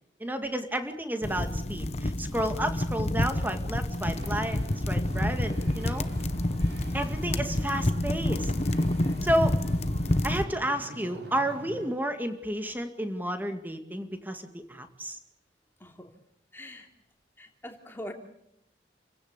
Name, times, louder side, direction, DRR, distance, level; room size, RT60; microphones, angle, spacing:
voice 1, 0.2-4.6 4.9-6.1 6.9-8.5 9.2-9.6 10.2-15.2, right 1 dB, 10° right, 7 dB, 2.1 m, -31 dB
sound 1, 1.2-10.4, left 1 dB, 35° left, 1.0 m, -28 dB
Wind / Ocean, 4.0-11.9, right 1 dB, 75° right, 5.2 m, -44 dB
voice 2, 9.0-9.3 15.8-16.1 16.5-16.9 17.4-18.1, left 1 dB, 10° left, 3 dB, 3.1 m, -43 dB
29.0 x 16.5 x 8.3 m, 0.79 s
head